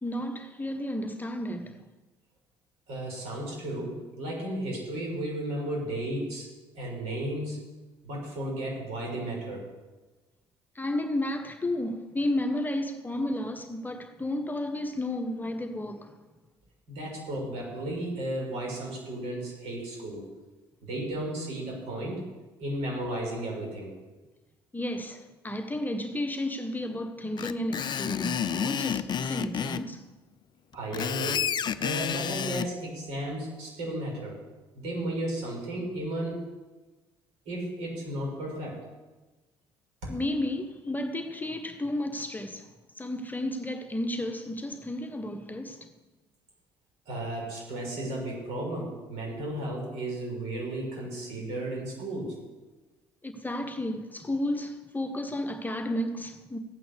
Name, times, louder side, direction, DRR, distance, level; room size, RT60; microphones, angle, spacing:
voice 1, 0.0-1.8 10.7-16.2 24.7-30.1 40.1-45.9 53.2-56.6, left 1 dB, 15° left, 1.2 m, -32 dB
voice 2, 2.9-6.5 6.7-7.6 8.0-9.7 16.9-20.2 20.8-22.3 22.6-23.9 30.7-31.5 31.8-34.4 34.7-36.5 37.5-38.8 40.0-40.2 47.1-52.4, right 1 dB, 60° right, 5.9 m, -34 dB
Screech, 27.4-29.8 30.7-32.7, left 8 dB, 35° left, 0.6 m, -30 dB
15.0 x 9.2 x 6.8 m
figure-of-eight pair, 55°, 12 cm